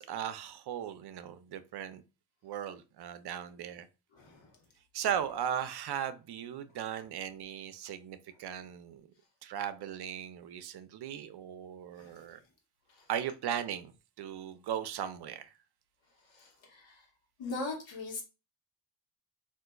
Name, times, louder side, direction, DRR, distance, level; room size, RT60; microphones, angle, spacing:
voice 1, 0.0-2.0 2.4-3.9 4.9-9.1 9.4-12.4 13.1-13.9 14.2-15.5, right 9 dB, 60° right, 0.5 m, -37 dB
voice 2, 4.1-4.6 12.0-12.4 12.9-13.0 16.3-17.1 17.4-18.2, left 3 dB, 75° left, 1.1 m, -41 dB
3.6 x 2.5 x 2.2 m
supercardioid pair, 55°, 45 cm